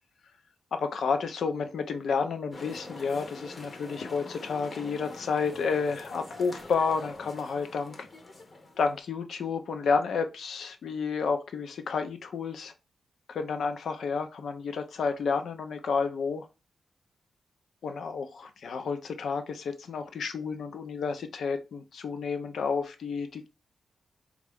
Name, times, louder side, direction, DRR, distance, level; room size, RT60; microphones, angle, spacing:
voice 1, 0.7-8.1 8.8-12.7 13.3-16.5 17.8-23.5, left 5 dB, 80° left, 0.5 m, -30 dB
sound 1, 2.5-9.0, left 2 dB, 30° left, 0.7 m, -45 dB
4.1 x 2.4 x 3.4 m
wide cardioid pair, 135°, 0 cm